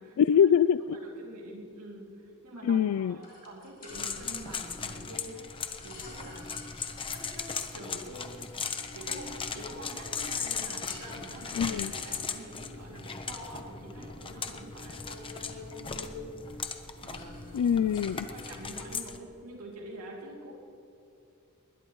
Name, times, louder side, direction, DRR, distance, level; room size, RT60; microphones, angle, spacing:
voice 1, 0.2-1.0 2.6-3.2 11.5-11.9 17.5-18.3, left 8 dB, 75° left, 15 dB, 0.3 m, -24 dB
voice 2, 0.9-6.5 7.1-8.5 8.9-16.7 17.0-20.6, equal, 75° right, -2 dB, 2.6 m, -46 dB
sound 1, 3.2-14.3 14.5-16.1 16.4-16.7 16.9-18.8, left 4 dB, 40° left, 3.2 m, -54 dB
sound 2, 3.9-19.2, left 5 dB, 25° left, 0.8 m, -38 dB
21.0 x 20.0 x 3.1 m, 2.8 s
head